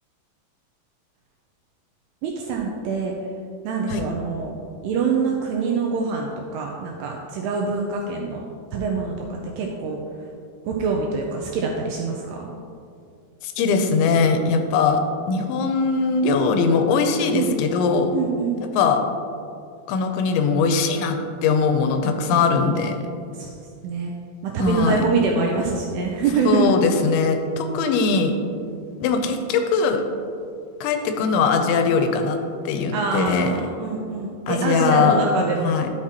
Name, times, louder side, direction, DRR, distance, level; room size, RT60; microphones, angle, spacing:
voice 1, 2.2-3.2 3.6-4.5 4.8-8.5 8.7-10.0 10.6-12.5 17.3-17.5 18.1-18.9 23.3-23.5 23.8-24.1 24.4-26.7 32.9-35.8, right 5 dB, 85° right, 0 dB, 2.3 m, -25 dB
voice 2, 13.4-15.0 15.3-18.1 18.8-19.0 19.9-23.1 24.6-25.0 26.4-28.4 29.0-30.0 30.8-32.4 32.7-33.6 34.5-35.2 35.6-35.9, left 5 dB, 90° left, 6 dB, 2.9 m, -20 dB
11.5 x 5.9 x 2.9 m, 2.4 s
omnidirectional pair, 5.2 m